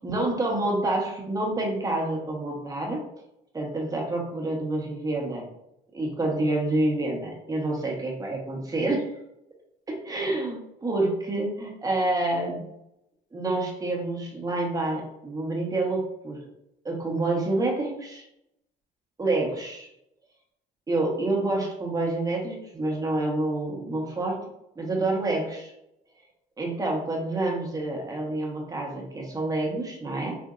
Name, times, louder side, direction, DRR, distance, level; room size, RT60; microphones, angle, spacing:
voice 1, 0.0-3.0 3.5-5.5 5.9-9.1 10.1-12.7 13.3-16.4 16.8-18.2 19.2-19.9 20.9-24.4 24.8-25.7 26.6-30.4, right 2 dB, 20° right, -1 dB, 1.0 m, -28 dB
4.3 x 2.5 x 2.4 m, 0.82 s
cardioid pair, 110°, 17 cm